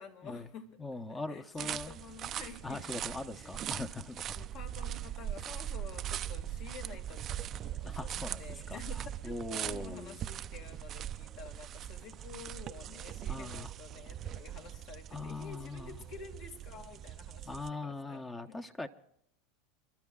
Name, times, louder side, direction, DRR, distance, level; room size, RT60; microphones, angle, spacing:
voice 1, 0.0-2.8 3.1-3.8 4.3-8.9 9.2-18.6, left 6 dB, 55° left, 4 dB, 2.3 m, -50 dB
voice 2, 0.8-1.9 2.6-4.5 7.9-8.8 9.2-10.2 13.3-13.7 15.1-16.0 17.5-18.9, left 2 dB, 15° left, 8 dB, 0.9 m, -41 dB
sound 1, 1.6-17.7, right 11 dB, 35° right, 0.5 m, -41 dB
30.0 x 12.5 x 2.4 m, 0.74 s
hypercardioid pair, 110°, 0 cm